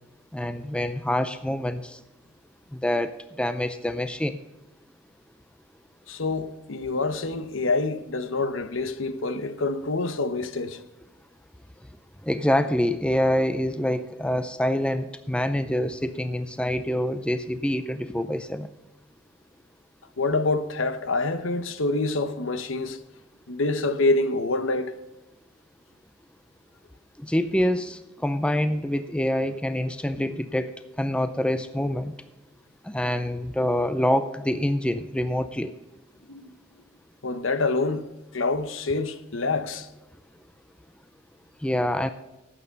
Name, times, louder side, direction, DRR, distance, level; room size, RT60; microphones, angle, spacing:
voice 1, 0.3-2.0 2.7-4.4 12.2-18.7 27.2-30.7 31.0-32.1 32.8-35.7 41.6-42.1, left 1 dB, 5° left, 0.4 m, -26 dB
voice 2, 6.1-10.8 20.2-23.0 23.5-25.0 36.3-36.5 37.2-38.0 38.3-39.9, left 3 dB, 75° left, 0.9 m, -26 dB
12.0 x 8.8 x 5.2 m
head